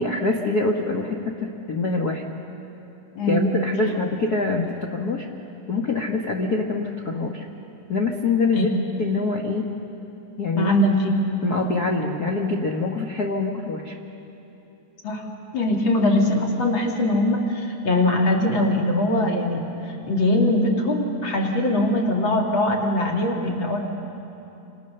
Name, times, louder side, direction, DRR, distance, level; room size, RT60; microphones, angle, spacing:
voice 1, 0.0-2.2 3.3-5.3 5.7-7.5 7.9-9.7 10.4-10.7 11.4-14.0, left 3 dB, 60° left, 1 dB, 1.0 m, -25 dB
voice 2, 3.2-3.6 8.5-8.6 10.5-11.1 15.0-15.2 15.5-23.8, left 1 dB, 40° left, 0 dB, 2.9 m, -21 dB
27.5 x 27.0 x 6.8 m, 2.9 s
omnidirectional pair, 3.9 m